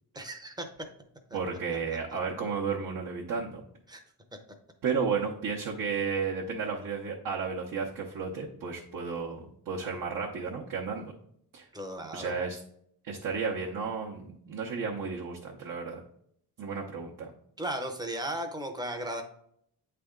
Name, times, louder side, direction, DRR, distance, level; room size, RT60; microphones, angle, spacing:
voice 1, 0.2-0.7 1.3-1.4 3.9-4.0 11.7-12.3 17.6-19.2, right 1 dB, 10° right, 5 dB, 0.7 m, -35 dB
voice 2, 1.3-3.6 4.8-11.0 11.5-11.7 12.1-12.6 13.0-16.0 16.6-17.3, right 5 dB, 55° right, -2 dB, 0.8 m, -33 dB
8.6 x 3.4 x 3.7 m, 0.68 s
wide cardioid pair, 150°, 38 cm